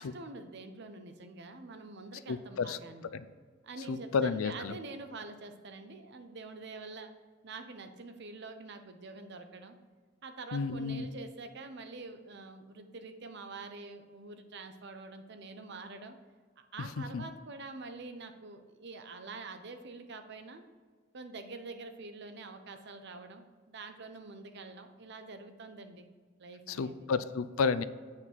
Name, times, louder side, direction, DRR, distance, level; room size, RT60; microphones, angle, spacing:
voice 1, 0.0-3.1 3.6-7.1 7.4-9.8 10.2-16.2 16.7-20.6 21.1-26.0 26.4-27.1, right 3 dB, 55° right, 7 dB, 0.7 m, -46 dB
voice 2, 2.3-2.8 3.1-3.3 3.9-4.8 10.5-11.1 16.8-17.2 26.7-27.8, left 5 dB, 90° left, 14 dB, 0.4 m, -32 dB
8.1 x 5.7 x 4.5 m, 1.5 s
head